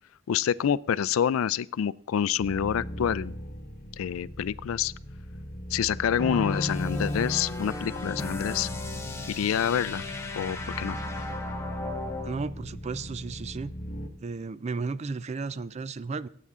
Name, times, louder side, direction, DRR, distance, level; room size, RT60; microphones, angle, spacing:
voice 1, 0.3-3.3 4.0-4.9 5.7-8.7 9.3-10.0 10.4-11.0, left 8 dB, 80° left, 21 dB, 0.3 m, -27 dB
sound 1, 2.4-14.1, equal, 50° left, 1.3 m, -39 dB
sound 2, 6.2-12.4, left 2 dB, 15° left, 1.2 m, -34 dB
voice 2, 12.2-13.7 14.2-16.3, right 4 dB, 30° right, 17 dB, 0.4 m, -34 dB
18.0 x 8.4 x 3.6 m, 0.63 s
head